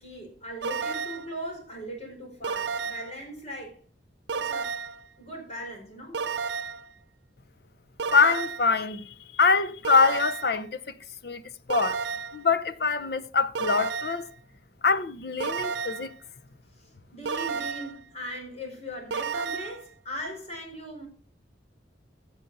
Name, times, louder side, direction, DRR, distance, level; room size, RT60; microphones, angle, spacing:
voice 1, 0.0-3.8 4.3-4.8 5.2-6.2 16.7-21.1, equal, 35° left, 4.6 m, -39 dB
sound 1, 0.6-1.3 2.4-3.2 4.3-5.0 6.1-6.9 8.0-8.7 9.8-10.6 11.7-12.4 13.6-14.3 15.4-16.1 17.3-18.0 19.1-19.8, right 5 dB, 80° right, 0.7 m, -32 dB
voice 2, 8.1-10.9 11.2-11.4 11.7-12.0 12.3-14.3 14.8-16.1, left 4 dB, 60° left, 0.8 m, -24 dB
16.0 x 7.3 x 4.0 m
head